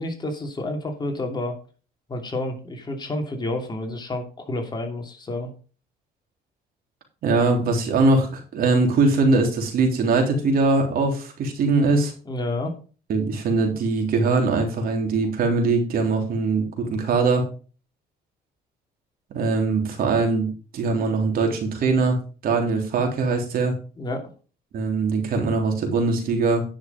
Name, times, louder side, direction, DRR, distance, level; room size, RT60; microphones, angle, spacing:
voice 1, 0.0-1.6 2.1-5.5 12.3-12.7 24.0-24.3, left 1 dB, 25° left, 3 dB, 2.7 m, -29 dB
voice 2, 7.2-12.1 13.1-17.5 19.3-22.2 22.4-23.8 24.7-26.6, right 3 dB, 60° right, 3 dB, 3.5 m, -21 dB
10.5 x 6.3 x 5.3 m, 0.37 s
cardioid pair, 110°, 17 cm